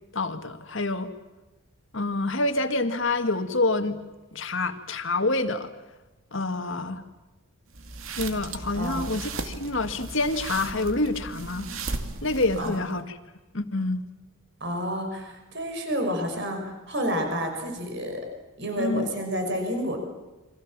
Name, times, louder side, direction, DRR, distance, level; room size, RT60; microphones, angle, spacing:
voice 1, 0.1-1.1 1.9-4.0 4.3-5.7 6.3-7.0 8.2-11.7 12.2-13.2 13.5-14.0 18.8-19.1, left 2 dB, 60° left, 7 dB, 1.9 m, -27 dB
sound 1, 7.7-13.0, right 3 dB, 65° right, 2.4 m, -36 dB
voice 2, 8.7-9.1 12.6-12.8 14.6-18.2 18.6-20.0, equal, 50° right, 4 dB, 5.5 m, -29 dB
29.5 x 24.5 x 7.4 m, 1.1 s
head